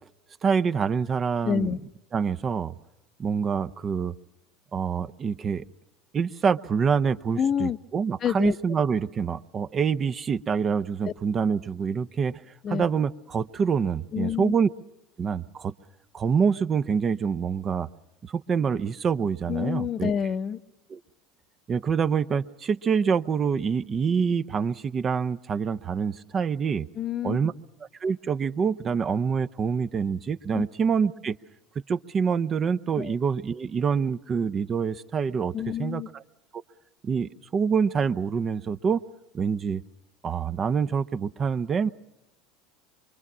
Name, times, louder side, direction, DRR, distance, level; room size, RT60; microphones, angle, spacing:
voice 1, 0.4-1.7 2.1-2.8 3.2-4.1 4.7-5.7 6.1-12.4 12.7-14.7 15.2-15.7 16.1-17.9 18.2-20.1 20.9-21.0 21.7-26.9 27.2-27.5 28.0-31.4 31.9-36.2 36.5-36.6 37.0-39.0 39.3-39.8 40.2-41.9, right 6 dB, 35° right, 12 dB, 0.8 m, -26 dB
voice 2, 1.4-1.8 7.4-7.8 8.2-8.6 11.0-11.1 12.6-12.9 14.1-14.5 19.5-20.6 26.9-27.5 30.5-30.6 33.0-33.1 35.5-36.1, left 8 dB, 40° left, 12 dB, 0.8 m, -28 dB
24.5 x 23.5 x 6.2 m, 0.96 s
hypercardioid pair, 80°, 0 cm